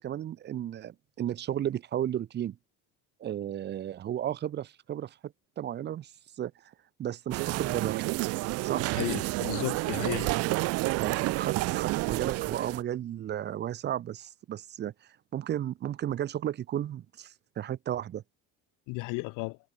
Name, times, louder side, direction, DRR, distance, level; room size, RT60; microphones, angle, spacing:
voice 1, 0.0-2.6 3.2-6.1 6.4-6.5 7.0-8.0 8.6-8.8 11.0-14.9 15.3-18.2, right 11 dB, 35° right, 1.5 m, -34 dB
sound 1, 7.3-12.8, right 21 dB, 50° right, 0.6 m, -30 dB
voice 2, 9.0-10.3 18.9-19.6, left 28 dB, 75° left, 1.9 m, -34 dB
cardioid pair, 175°, 32 cm